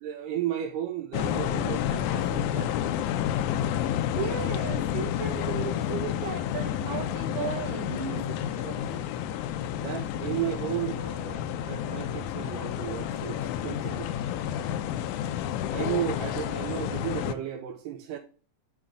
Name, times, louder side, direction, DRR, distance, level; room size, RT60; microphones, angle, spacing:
voice 1, 0.0-2.7 8.6-9.0 9.8-14.1 15.1-15.2 15.7-18.2, right 11 dB, 85° right, 2.4 m, -34 dB
sound 1, 1.1-17.4, left 10 dB, 80° left, 1.9 m, -30 dB
voice 2, 4.1-9.0, right 6 dB, 65° right, 2.7 m, -35 dB
9.7 x 3.4 x 5.0 m
omnidirectional pair, 3.7 m